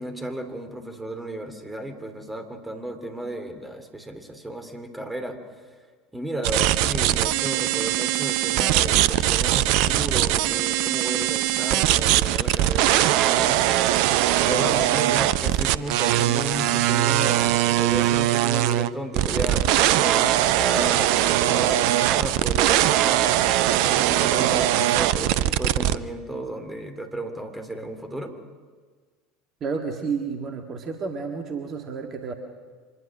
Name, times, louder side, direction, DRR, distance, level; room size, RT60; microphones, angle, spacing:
voice 1, 0.0-5.7 6.1-23.4 23.8-28.3, right 1 dB, 10° right, 7 dB, 3.2 m, -33 dB
sound 1, 6.4-26.0, right 13 dB, 55° right, 0.6 m, -21 dB
voice 2, 29.6-32.3, right 5 dB, 35° right, 4 dB, 2.0 m, -31 dB
25.0 x 20.5 x 6.3 m, 1.5 s
figure-of-eight pair, 70°, 0 cm